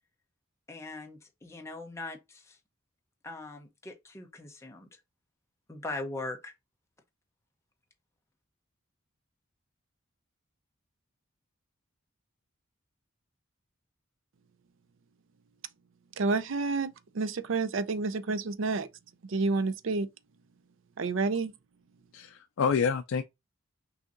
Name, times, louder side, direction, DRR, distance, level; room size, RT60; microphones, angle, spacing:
voice 1, 0.7-2.6 3.2-5.0 5.7-6.5, left 2 dB, 15° left, 0.7 m, -40 dB
voice 2, 16.2-18.9 19.3-20.1 21.0-21.5, right 3 dB, 65° right, 0.5 m, -29 dB
voice 3, 22.1-23.2, left 6 dB, 70° left, 0.4 m, -28 dB
6.2 x 2.7 x 2.5 m
head